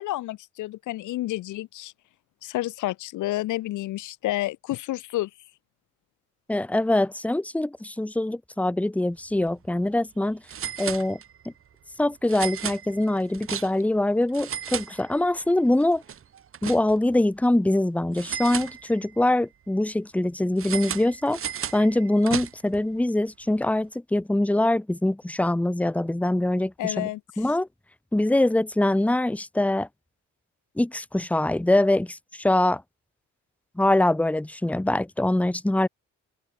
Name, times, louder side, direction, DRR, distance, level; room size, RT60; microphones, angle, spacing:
voice 1, 0.0-1.9 2.4-5.3 26.8-27.2, left 16 dB, 75° left, 0.8 m, -30 dB
voice 2, 6.5-10.4 10.8-11.2 12.0-16.0 16.6-21.4 21.7-27.1 27.4-27.7 28.1-29.9 30.8-32.8 33.8-35.9, left 1 dB, 5° left, 1.0 m, -23 dB
sound 1, 9.3-9.5 9.8-9.9 10.5-11.5 12.3-14.0 14.3-15.5 15.8-17.2 18.1-19.3 20.6-22.8, right 8 dB, 45° right, 1.2 m, -35 dB
cardioid pair, 90°, 30 cm